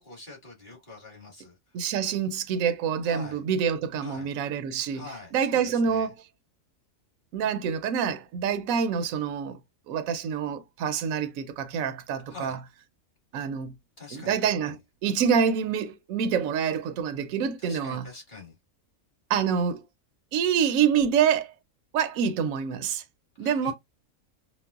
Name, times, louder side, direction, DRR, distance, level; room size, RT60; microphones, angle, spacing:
voice 1, 0.0-1.8 3.0-3.4 4.0-4.3 4.9-6.1 12.3-12.6 14.0-14.8 17.6-18.6 23.4-23.7, left 3 dB, 35° left, 1.8 m, -44 dB
voice 2, 1.7-5.0 5.3-6.1 7.3-9.6 9.9-12.6 13.3-13.7 14.1-18.1 19.3-19.8 20.3-21.5 21.9-23.0 23.4-23.7, right 7 dB, 80° right, 1.0 m, -26 dB
5.1 x 2.1 x 2.3 m
omnidirectional pair, 1.4 m